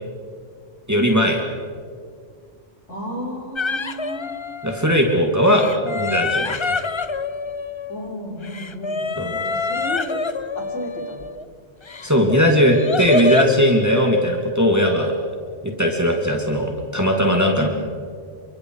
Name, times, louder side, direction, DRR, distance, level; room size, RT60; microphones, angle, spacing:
voice 1, 0.9-1.4 4.6-6.8 9.2-9.4 12.0-15.1 15.6-17.7, equal, 15° right, 1 dB, 2.5 m, -18 dB
voice 2, 2.9-4.6 7.9-9.1 9.4-10.2 10.6-11.3 17.5-17.7, equal, 75° left, 0 dB, 4.4 m, -33 dB
sound 1, 3.6-5.0 5.4-8.1 8.4-11.4 11.9-13.6, left 3 dB, 30° left, 0.6 m, -26 dB
28.5 x 25.0 x 4.9 m, 2.1 s
omnidirectional pair, 1.2 m